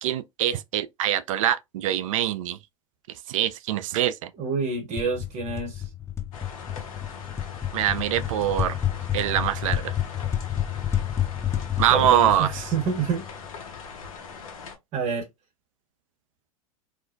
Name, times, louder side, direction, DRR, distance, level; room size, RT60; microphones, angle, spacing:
voice 1, 0.0-2.6 3.3-4.3 7.7-8.8 9.1-9.9 11.8-12.6, right 11 dB, 65° right, 0.4 m, -24 dB
voice 2, 4.4-5.8 11.9-13.2 14.9-15.3, right 5 dB, 45° right, 0.9 m, -27 dB
sound 1, 5.0-13.6, left 10 dB, 15° left, 0.4 m, -30 dB
sound 2, 6.3-14.8, left 5 dB, 70° left, 0.7 m, -41 dB
2.4 x 2.1 x 2.4 m
hypercardioid pair, 90°, 18 cm